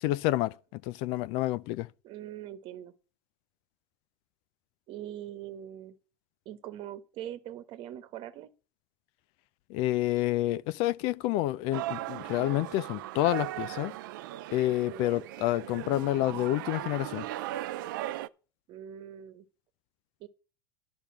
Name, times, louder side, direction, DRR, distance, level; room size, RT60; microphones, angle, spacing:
voice 1, 0.0-1.9 9.7-13.9 14.5-17.3, left 15 dB, 60° left, 0.4 m, -29 dB
voice 2, 2.0-2.9 4.9-6.0 6.4-8.5 14.9-15.2 18.7-19.5 20.2-20.3, right 11 dB, 50° right, 1.2 m, -42 dB
sound 1, 11.7-18.3, right 15 dB, 75° right, 0.5 m, -38 dB
10.5 x 5.2 x 7.2 m
supercardioid pair, 105°, 11 cm